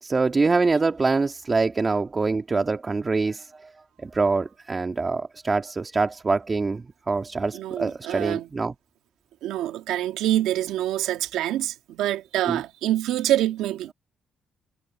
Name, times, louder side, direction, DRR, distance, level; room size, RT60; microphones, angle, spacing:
voice 1, 0.0-3.7 4.0-8.7 12.4-12.6, right 3 dB, 30° right, 2.0 m, -25 dB
voice 2, 7.5-8.5 9.4-13.9, right 13 dB, 90° right, 1.8 m, -26 dB
cardioid pair, 90°, 0 cm